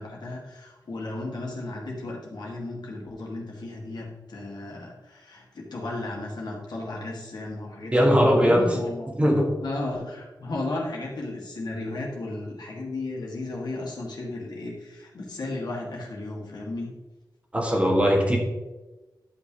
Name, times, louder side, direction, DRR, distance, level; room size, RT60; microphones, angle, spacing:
voice 1, 0.0-8.1 8.4-9.1 9.6-17.0, left 2 dB, 70° left, -2 dB, 2.3 m, -34 dB
voice 2, 7.9-8.8 9.2-9.6 17.5-18.4, equal, 15° right, 0 dB, 1.5 m, -20 dB
11.0 x 6.1 x 3.3 m, 1.1 s
wide cardioid pair, 130°, 8 cm